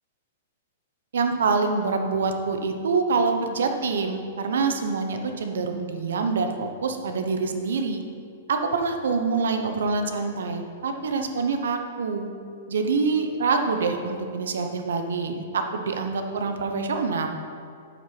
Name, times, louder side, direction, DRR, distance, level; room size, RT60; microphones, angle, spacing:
voice 1, 1.1-8.0 8.5-12.3 12.7-17.3, right 4 dB, 85° right, 5 dB, 1.1 m, -26 dB
8.8 x 5.9 x 6.1 m, 2.4 s
hypercardioid pair, 160°, 0 cm